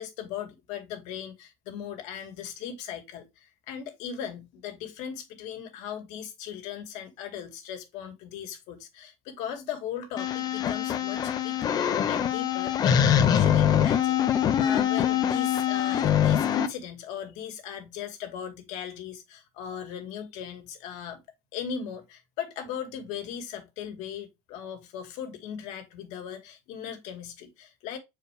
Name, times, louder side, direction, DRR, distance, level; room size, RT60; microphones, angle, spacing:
voice 1, 0.0-21.2 21.5-28.0, left 8 dB, 65° left, 2.0 m, -38 dB
sound 1, 10.2-16.7, left 9 dB, 30° left, 0.7 m, -24 dB
7.8 x 4.7 x 3.3 m
cardioid pair, 165°, 13 cm